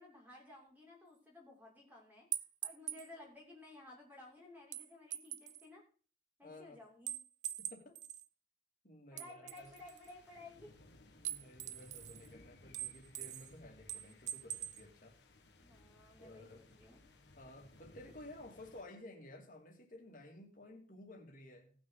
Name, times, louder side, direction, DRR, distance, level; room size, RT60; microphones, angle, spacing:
voice 1, 0.0-2.3 2.6-5.8 6.4-7.2 9.1-10.7 15.6-17.0, left 2 dB, 10° right, -2 dB, 2.9 m, -56 dB
sound 1, 2.3-3.1 4.7-5.6 7.1-8.3 9.2-10.1 11.2-12.3 12.7-13.5 13.9-14.8, right 12 dB, 40° right, 0.5 m, -43 dB
voice 2, 6.4-6.8 7.6-7.9 8.8-9.7 11.1-15.2 16.2-16.6 17.4-21.7, left 1 dB, 45° left, 1 dB, 2.5 m, -54 dB
sound 2, 9.5-18.8, left 2 dB, 70° left, 1.5 m, -62 dB
18.0 x 6.2 x 3.9 m, 0.40 s
head